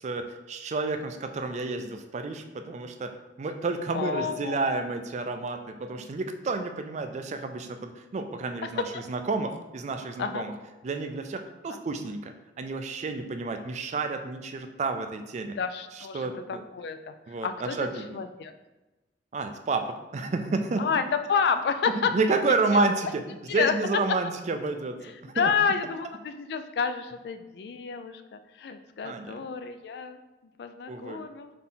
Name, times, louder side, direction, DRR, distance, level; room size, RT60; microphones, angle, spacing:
voice 1, 0.0-10.5 10.8-15.5 15.9-16.6 17.3-18.2 19.3-20.8 22.0-25.5 29.0-29.4 30.9-31.2, right 3 dB, 40° right, 7 dB, 0.3 m, -30 dB
voice 2, 3.9-4.6 8.9-9.0 10.2-10.5 11.7-11.8 15.6-17.1 17.4-17.8 18.1-18.5 20.8-21.0 21.3-22.1 22.4-22.8 23.5-23.7 25.3-30.2 30.6-31.5, left 6 dB, 60° left, 9 dB, 0.3 m, -30 dB
4.1 x 2.8 x 3.5 m, 1.1 s
head